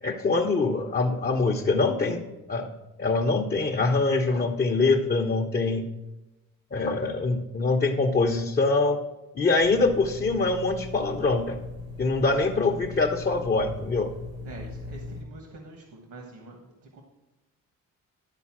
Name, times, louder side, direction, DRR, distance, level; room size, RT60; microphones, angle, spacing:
voice 1, 0.0-2.7 3.0-5.9 6.7-9.0 9.3-11.6 12.0-14.1, left 3 dB, 30° left, 1 dB, 0.7 m, -24 dB
sound 1, 9.6-15.2, left 3 dB, 85° right, 1.9 m, -39 dB
voice 2, 14.4-17.0, right 2 dB, 70° right, 2 dB, 1.4 m, -45 dB
11.5 x 4.0 x 5.9 m, 1.0 s
cardioid pair, 90°, 30 cm